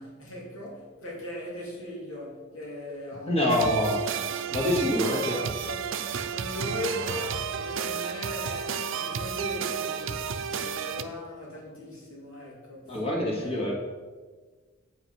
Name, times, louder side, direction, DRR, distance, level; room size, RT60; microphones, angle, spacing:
voice 1, 0.0-3.9 4.2-4.3 4.6-5.8 6.3-10.2 10.5-13.7, left 1 dB, 85° left, -3 dB, 2.7 m, -39 dB
voice 2, 3.3-4.0 4.5-5.4 12.9-13.7, left 1 dB, 30° left, -2 dB, 2.1 m, -25 dB
sound 1, 3.5-11.0, right 7 dB, 70° right, 0.6 m, -32 dB
8.1 x 5.7 x 5.6 m, 1.4 s
head